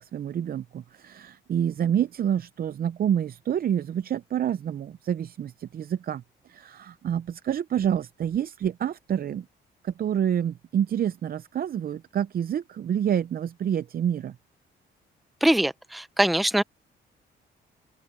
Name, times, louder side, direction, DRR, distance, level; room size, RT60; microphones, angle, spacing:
voice 1, 0.0-6.2 6.5-9.5 9.8-14.4, right 9 dB, 50° right, 0.6 m, -28 dB
voice 2, 15.4-16.6, right 1 dB, ahead, 0.5 m, -22 dB
open air
cardioid pair, 90°, 20 cm